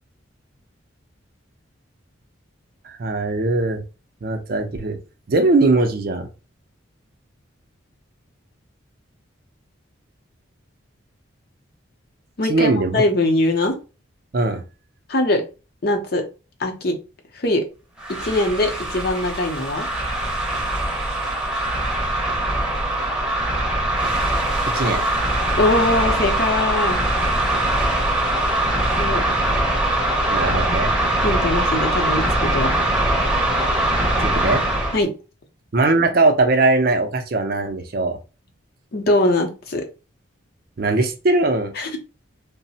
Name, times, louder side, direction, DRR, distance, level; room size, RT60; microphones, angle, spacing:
voice 1, 2.8-3.8 4.2-5.0 5.3-6.3 12.5-13.0 14.3-14.6 24.7-25.0 30.3-30.9 34.2-34.6 35.7-38.2 40.8-41.7, right 2 dB, 50° right, 5 dB, 0.4 m, -20 dB
voice 2, 12.4-13.8 15.1-15.4 15.8-16.2 16.6-17.0 17.3-17.6 18.1-19.9 25.5-27.0 29.0-29.2 31.2-32.8 34.9-35.1 38.9-39.8 41.8-42.0, left 2 dB, 50° left, 3 dB, 0.6 m, -21 dB
sound 1, 18.0-35.0, right 1 dB, 5° right, 0.6 m, -22 dB
3.1 x 2.0 x 2.7 m, 0.31 s
head